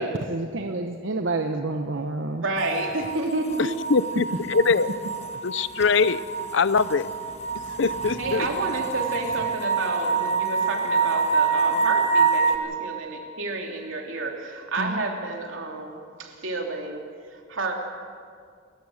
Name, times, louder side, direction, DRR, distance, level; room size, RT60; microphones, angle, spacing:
voice 1, 0.0-2.4 11.0-11.1 11.4-11.5 14.8-15.0, right 2 dB, 65° right, 5 dB, 0.9 m, -29 dB
voice 2, 2.3-3.8 8.1-17.0 17.3-17.7, right 2 dB, 80° right, 1 dB, 3.1 m, -30 dB
sound 1, 2.6-12.6, right 5 dB, 35° left, 1.5 m, -26 dB
voice 3, 3.6-4.9 5.4-6.2 6.5-7.1 7.8-8.4, left 4 dB, 65° left, 16 dB, 0.6 m, -22 dB
29.0 x 14.5 x 6.5 m, 2.1 s
head